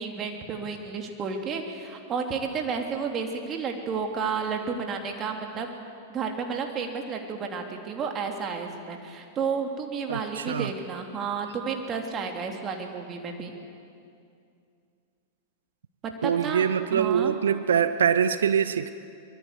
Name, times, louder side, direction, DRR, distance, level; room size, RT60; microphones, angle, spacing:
voice 1, 0.0-5.7 6.1-13.5 16.0-16.7 16.9-17.3, right 5 dB, 30° right, 3 dB, 3.1 m, -31 dB
voice 2, 10.1-10.7 16.2-19.0, right 8 dB, 70° right, 13 dB, 0.9 m, -24 dB
25.5 x 22.0 x 8.3 m, 2.5 s
figure-of-eight pair, 95°, 0 cm